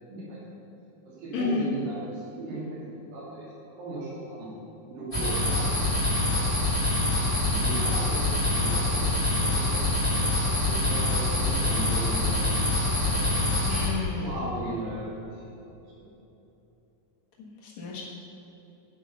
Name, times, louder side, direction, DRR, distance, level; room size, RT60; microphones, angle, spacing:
voice 1, 0.1-0.6 1.1-3.5 3.8-4.5 4.9-6.8 7.2-9.1 9.3-9.8 10.1-10.3 10.6-12.6 13.0-13.5 14.2-15.4 16.0-16.1, right 1 dB, 90° right, -6 dB, 4.3 m, -37 dB
voice 2, 1.3-1.7 13.6-14.5 17.6-18.0, left 4 dB, 60° left, -4 dB, 2.8 m, -31 dB
sound 1, 5.1-13.9, left 2 dB, 10° left, 1.8 m, -25 dB
9.7 x 8.7 x 5.4 m, 2.9 s
omnidirectional pair, 3.9 m